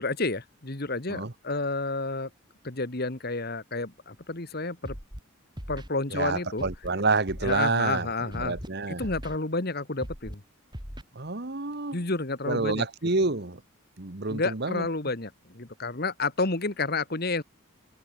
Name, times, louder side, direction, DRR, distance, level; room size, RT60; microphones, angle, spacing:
voice 1, 0.0-2.3 2.6-5.0 5.7-6.6 7.4-8.6 8.9-10.4 11.9-12.9 14.3-17.4, left 3 dB, 45° left, 1.8 m, -30 dB
Scratching (performance technique), 4.8-5.2 5.6-5.9 6.6-6.9 7.3-7.6 8.3-8.7 9.0-9.4 10.0-10.3 10.7-11.0, equal, 20° right, 6.0 m, -39 dB
voice 2, 6.1-8.1 8.4-9.1 11.1-12.0 12.4-13.6 14.0-14.9, right 3 dB, 50° right, 1.3 m, -28 dB
head